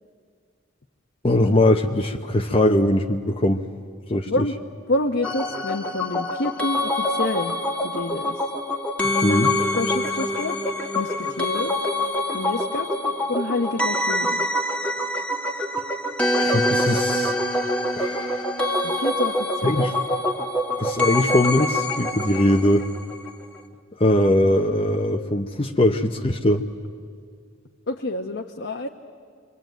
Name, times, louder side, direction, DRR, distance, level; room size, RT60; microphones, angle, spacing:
voice 1, 1.2-3.6 4.1-4.4 9.2-9.5 16.4-17.4 18.0-18.5 19.6-19.9 20.8-22.9 24.0-26.6, left 1 dB, 30° left, 4 dB, 0.9 m, -21 dB
voice 2, 4.9-7.6 7.8-8.4 9.5-10.6 10.9-11.7 12.3-12.9 13.3-14.4 18.8-19.9 27.9-28.9, left 2 dB, 65° left, 2 dB, 1.0 m, -28 dB
sound 1, 5.2-23.3 23.6-23.7, left 1 dB, 5° left, 1.7 m, -25 dB
27.0 x 23.5 x 9.2 m, 2.1 s
head